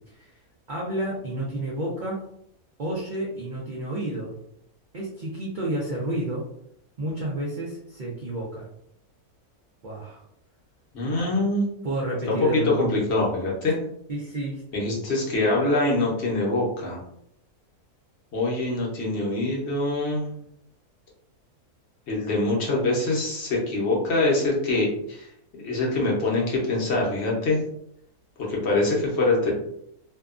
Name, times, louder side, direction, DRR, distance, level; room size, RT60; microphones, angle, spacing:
voice 1, 0.7-2.2 2.8-4.3 4.9-6.5 7.0-8.7 9.8-10.2 11.1-11.3 11.8-12.9 14.1-14.6, right 1 dB, 85° right, -4 dB, 0.4 m, -30 dB
voice 2, 10.9-11.7 12.3-12.4 12.6-13.8 14.7-17.0 18.3-20.3 22.1-25.3 25.6-27.6 28.5-29.5, left 2 dB, 55° left, -3 dB, 0.9 m, -24 dB
2.7 x 2.3 x 2.3 m, 0.73 s
omnidirectional pair, 1.6 m